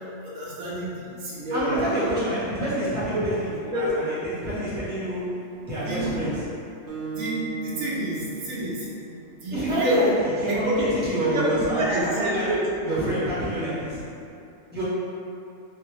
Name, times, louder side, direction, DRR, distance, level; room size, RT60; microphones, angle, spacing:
voice 1, 0.2-2.1 3.1-3.3 3.6-3.9 5.8-6.0 7.1-8.9 9.4-10.1 10.4-10.9 11.3-12.7, equal, 90° right, -7 dB, 1.2 m, -27 dB
voice 2, 1.5-6.5 9.5-12.5 12.8-14.1 14.7-14.8, right 1 dB, 10° right, -11 dB, 0.9 m, -28 dB
Acoustic guitar, 6.9-9.6, right 6 dB, 55° right, 0.8 m, -37 dB
3.2 x 2.6 x 2.9 m, 2.7 s
omnidirectional pair, 1.3 m